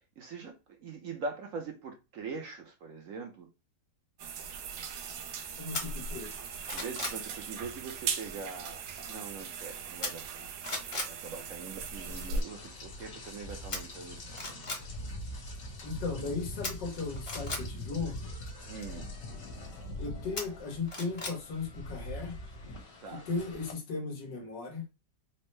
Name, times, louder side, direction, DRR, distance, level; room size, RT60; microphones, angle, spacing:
voice 1, 0.2-3.5 6.7-10.5 11.1-14.2 14.5-14.9 16.1-16.4 18.7-19.1 23.0-23.3, right 4 dB, 65° right, 0.9 m, -42 dB
sound 1, 4.2-12.4, right 5 dB, 85° right, 1.3 m, -39 dB
voice 2, 5.6-6.4 15.8-18.3 20.0-22.4 23.1-24.8, left 4 dB, 85° left, 1.7 m, -36 dB
sound 2, 5.7-5.8 6.3-7.2 10.0-10.4 10.6-11.1 13.7-13.8 14.3-14.8 16.6-17.6 20.4-21.4 21.7-21.8, left 2 dB, 30° left, 0.5 m, -36 dB
Rain, 11.9-23.7, left 1 dB, 65° left, 1.8 m, -43 dB
4.4 x 2.0 x 3.2 m
omnidirectional pair, 1.8 m